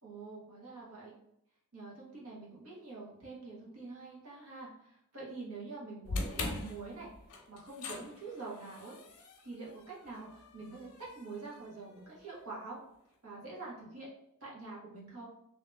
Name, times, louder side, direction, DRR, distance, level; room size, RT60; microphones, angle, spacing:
voice 1, 0.0-1.1 1.7-7.1 7.5-12.8 13.2-14.1 14.4-15.3, right 3 dB, 90° right, -5 dB, 1.4 m, -46 dB
sound 1, 6.0-12.3, left 2 dB, 90° left, 0.7 m, -42 dB
3.0 x 2.8 x 3.4 m, 0.76 s
head